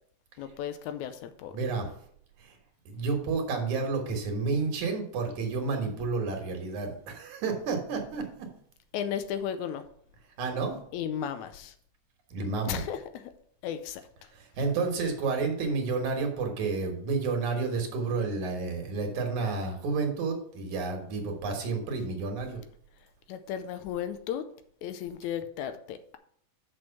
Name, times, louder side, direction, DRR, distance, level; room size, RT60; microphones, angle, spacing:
voice 1, 0.4-1.5 8.9-9.8 10.9-11.7 12.7-13.0 13.6-14.0 23.3-24.5 24.8-26.2, left 9 dB, 85° left, 9 dB, 2.0 m, -34 dB
voice 2, 1.5-1.9 2.4-2.6 2.9-8.5 10.4-10.8 12.3-12.8 14.3-22.6, right 4 dB, 80° right, 3 dB, 2.8 m, -30 dB
6.2 x 6.2 x 5.7 m, 0.64 s
omnidirectional pair, 3.3 m